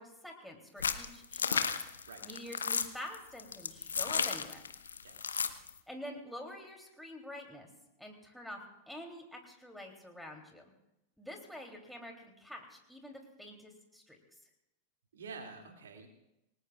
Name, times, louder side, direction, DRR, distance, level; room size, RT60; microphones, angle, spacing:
voice 1, 0.0-1.7 2.2-4.6 5.9-7.7 8.0-8.6 8.9-10.6 11.2-14.2, left 1 dB, ahead, 1 dB, 3.1 m, -47 dB
sound 1, 0.8-5.7, left 6 dB, 70° left, 0.9 m, -33 dB
voice 2, 5.0-5.4 15.1-16.1, right 4 dB, 65° right, 3 dB, 2.5 m, -48 dB
28.0 x 19.5 x 2.4 m, 0.89 s
figure-of-eight pair, 90°, 0 cm